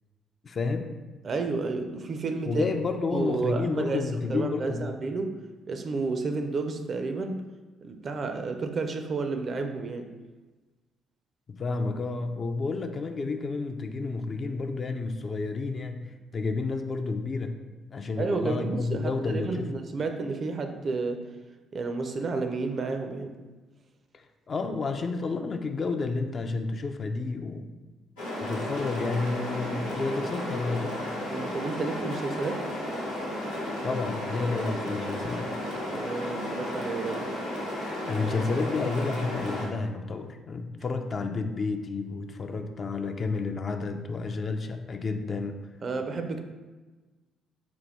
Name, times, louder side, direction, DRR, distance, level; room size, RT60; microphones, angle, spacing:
voice 1, 0.4-1.0 2.5-5.0 11.5-16.0 16.3-17.6 17.9-19.7 24.1-27.7 28.4-31.0 33.8-35.5 38.1-45.6, left 3 dB, 40° left, 6 dB, 0.3 m, -30 dB
voice 2, 1.2-2.7 3.1-5.4 5.7-7.4 7.8-10.1 18.2-21.2 21.7-23.4 31.3-32.7 35.9-37.3 45.8-46.4, right 3 dB, 45° right, 6 dB, 0.4 m, -31 dB
sound 1, 28.2-39.7, left 1 dB, 85° left, 0.8 m, -33 dB
4.0 x 2.2 x 3.3 m, 1.2 s
figure-of-eight pair, 45°, 0 cm